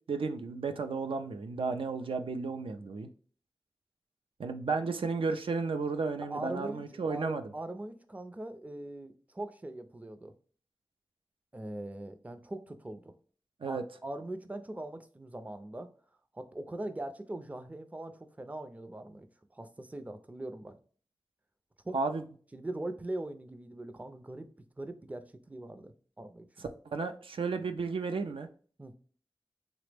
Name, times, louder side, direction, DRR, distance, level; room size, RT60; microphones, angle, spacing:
voice 1, 0.1-3.1 4.4-7.4 13.6-13.8 21.9-22.2 26.9-28.5, right 4 dB, 85° right, 0.4 m, -33 dB
voice 2, 6.2-6.8 7.1-10.3 11.5-13.1 13.7-15.9 16.3-20.8 21.8-22.0 22.5-24.5 24.8-26.5 28.8-28.9, right 1 dB, 15° right, 0.4 m, -41 dB
3.2 x 2.0 x 3.2 m
wide cardioid pair, 55°, 9 cm